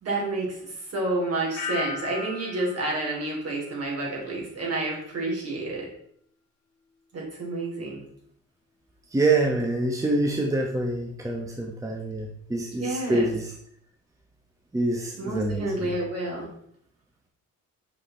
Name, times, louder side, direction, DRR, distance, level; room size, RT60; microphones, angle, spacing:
voice 1, 0.0-5.8 7.1-8.0 12.8-13.3 15.2-16.5, right 2 dB, 55° right, -2 dB, 3.4 m, -29 dB
sound 1, 1.6-4.4 4.7-5.2, left 4 dB, 55° left, 1.6 m, -38 dB
voice 2, 9.1-13.5 14.7-16.0, right 2 dB, 10° right, 2 dB, 1.0 m, -26 dB
6.6 x 5.5 x 4.3 m, 0.69 s
cardioid pair, 90°, 30 cm